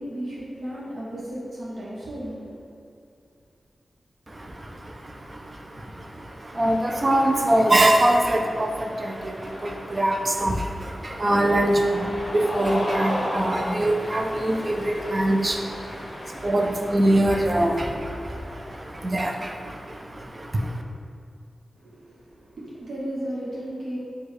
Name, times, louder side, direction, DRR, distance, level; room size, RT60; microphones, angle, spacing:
voice 1, 0.0-2.6 21.7-24.0, equal, 75° right, -9 dB, 0.9 m, -34 dB
voice 2, 4.3-20.8, right 1 dB, 30° right, 3 dB, 0.4 m, -24 dB
Cheering, 6.5-19.9, left 1 dB, 45° left, 0.7 m, -36 dB
4.6 x 2.3 x 4.7 m, 2.4 s
wide cardioid pair, 95°, 0 cm